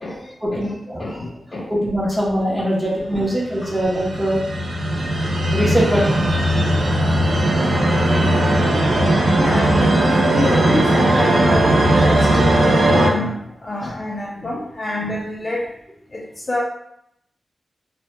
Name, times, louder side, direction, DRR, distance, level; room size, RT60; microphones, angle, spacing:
voice 1, 0.4-1.0 1.7-4.4 5.5-6.2 13.8-13.9, equal, 10° right, -5 dB, 0.6 m, -21 dB
voice 2, 1.0-1.9 3.1-3.3 4.2-4.3 9.3-15.7 16.1-16.6, left 2 dB, 30° left, -3 dB, 0.3 m, -27 dB
sound 1, 3.4-13.1, right 1 dB, 90° right, 0.4 m, -17 dB
2.1 x 2.0 x 2.9 m, 0.76 s
wide cardioid pair, 160°, 0 cm